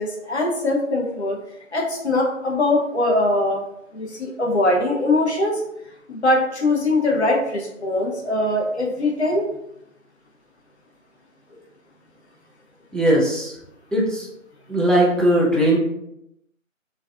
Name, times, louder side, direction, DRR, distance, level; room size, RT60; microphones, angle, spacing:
voice 1, 0.0-1.4 1.7-3.6 3.9-5.6 6.1-9.4, left 2 dB, 55° left, -1 dB, 0.7 m, -21 dB
voice 2, 12.9-13.6 13.9-14.3 14.7-15.8, right 1 dB, ahead, -4 dB, 0.3 m, -19 dB
2.4 x 2.3 x 2.2 m, 0.81 s
figure-of-eight pair, 165°, 41 cm